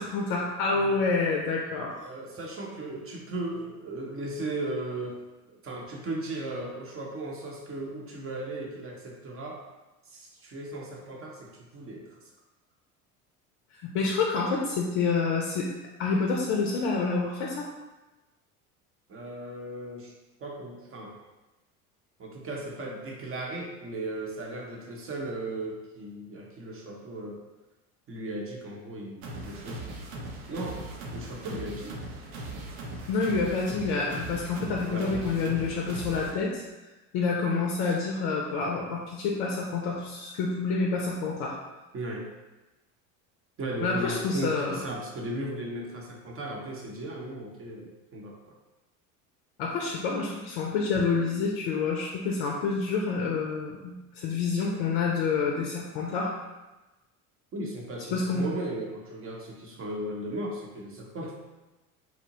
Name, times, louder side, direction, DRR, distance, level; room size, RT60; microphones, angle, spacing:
voice 1, 0.0-2.0 13.8-15.7 16.0-17.7 33.1-36.6 37.1-41.6 43.8-44.8 49.6-56.3 58.1-58.5, left 4 dB, 60° left, -1 dB, 0.5 m, -28 dB
voice 2, 2.0-5.2 5.6-9.6 10.1-12.2 19.1-20.1 20.4-21.2 22.2-27.4 28.1-30.1 30.5-30.8 31.1-32.0 34.9-35.5 37.8-38.0 41.9-42.3 43.6-48.4 50.9-51.0 57.5-61.5, right 1 dB, 30° right, -1 dB, 0.7 m, -36 dB
sound 1, 29.2-36.3, right 2 dB, 65° right, 0.7 m, -39 dB
2.8 x 2.1 x 2.8 m, 1.1 s
hypercardioid pair, 75°, 43 cm